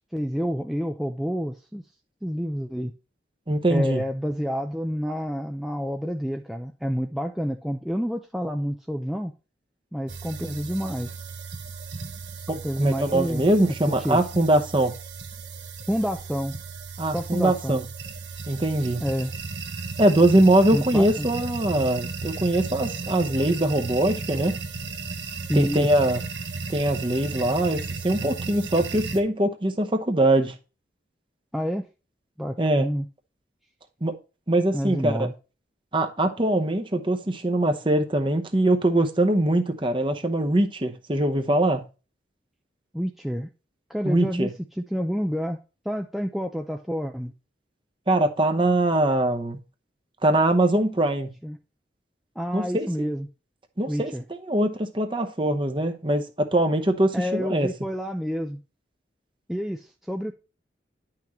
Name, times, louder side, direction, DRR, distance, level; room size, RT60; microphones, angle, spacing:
voice 1, 0.1-1.8 2.2-2.9 3.7-9.3 9.9-11.1 12.6-13.4 13.9-14.2 15.9-16.5 17.0-17.8 19.0-19.3 20.7-21.3 25.5-25.9 31.5-31.9 32.4-33.1 34.7-35.3 42.9-43.5 43.9-45.6 45.9-47.3 51.4-51.6 52.4-53.3 53.9-54.2 57.1-58.6 59.5-60.3, equal, ahead, 0.4 m, -28 dB
voice 2, 3.5-4.0 12.5-14.9 17.0-17.8 18.5-19.0 20.0-24.6 25.5-26.2 26.7-30.5 32.6-32.9 34.0-34.1 34.5-35.3 35.9-41.8 44.0-44.5 48.1-49.6 50.2-51.3 52.5-53.1 53.8-54.1 54.5-57.7, right 1 dB, 25° right, 0.9 m, -22 dB
sound 1, 10.1-29.2, right 4 dB, 75° right, 1.4 m, -35 dB
10.0 x 5.9 x 3.1 m
head